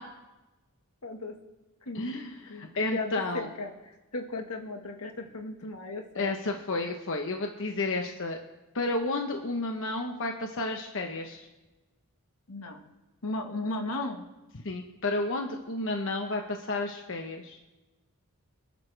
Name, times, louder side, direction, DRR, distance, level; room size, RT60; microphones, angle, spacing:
voice 1, 1.0-1.3 1.8-6.4 12.5-12.9 13.2-14.3, left 2 dB, 85° left, 3 dB, 1.7 m, -36 dB
voice 2, 1.9-3.5 6.1-8.4 8.7-11.4 14.6-17.6, left 2 dB, 60° left, 3 dB, 1.1 m, -31 dB
26.0 x 10.5 x 3.4 m, 1.1 s
head